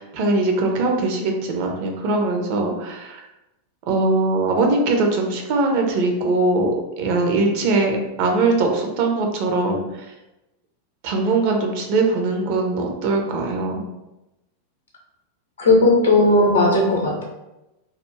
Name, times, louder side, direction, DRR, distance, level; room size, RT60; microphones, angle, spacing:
voice 1, 0.0-3.2 3.9-6.7 7.0-10.1 11.0-13.8, right 3 dB, 45° right, 2 dB, 0.4 m, -21 dB
voice 2, 15.6-17.2, left 2 dB, 65° left, -2 dB, 0.7 m, -16 dB
2.3 x 2.1 x 3.0 m, 0.97 s
figure-of-eight pair, 90°, 0 cm